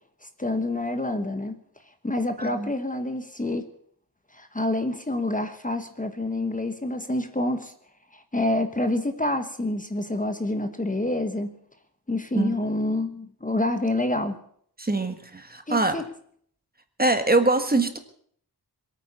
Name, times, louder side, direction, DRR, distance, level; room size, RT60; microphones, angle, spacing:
voice 1, 0.4-1.6 2.0-3.7 4.3-7.7 8.1-11.5 12.1-14.4 15.7-16.0, left 1 dB, 20° left, 8 dB, 1.2 m, -27 dB
voice 2, 2.4-2.7 12.3-12.5 14.8-15.9 17.0-18.0, right 2 dB, 25° right, 8 dB, 1.5 m, -23 dB
22.0 x 9.2 x 6.9 m, 0.63 s
wide cardioid pair, 100°, 41 cm